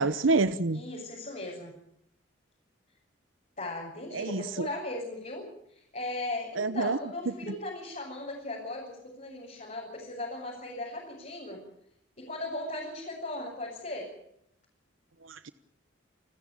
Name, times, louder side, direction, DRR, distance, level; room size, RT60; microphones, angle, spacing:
voice 1, 0.0-0.8 4.1-4.7 6.6-7.0 15.3-15.5, right 3 dB, 80° right, 13 dB, 0.9 m, -27 dB
voice 2, 0.7-1.7 3.6-11.6 12.2-14.1, left 2 dB, 40° left, -4 dB, 7.1 m, -37 dB
29.5 x 13.5 x 9.0 m, 0.73 s
head